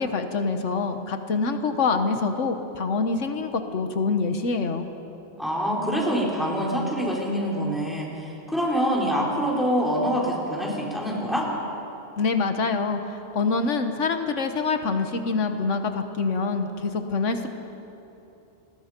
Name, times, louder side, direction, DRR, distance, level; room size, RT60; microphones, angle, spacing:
voice 1, 0.0-4.9 12.2-17.5, left 4 dB, 85° left, 6 dB, 1.5 m, -25 dB
voice 2, 5.4-11.5, equal, ahead, -4 dB, 4.7 m, -25 dB
30.0 x 21.5 x 5.3 m, 3.0 s
omnidirectional pair, 1.2 m